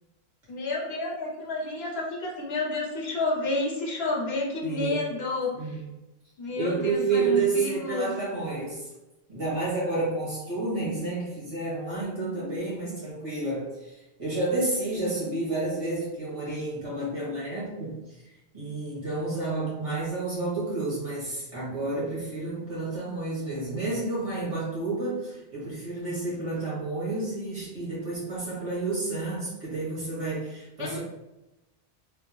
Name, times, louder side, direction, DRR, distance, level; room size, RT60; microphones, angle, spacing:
voice 1, 0.5-5.8 6.4-8.1 30.8-31.0, left 2 dB, 70° left, 0 dB, 0.9 m, -30 dB
voice 2, 4.6-5.0 5.5-5.8 6.6-8.9 9.3-18.0 18.5-31.0, right 3 dB, 60° right, -7 dB, 1.9 m, -30 dB
3.4 x 2.5 x 3.1 m, 0.99 s
omnidirectional pair, 1.1 m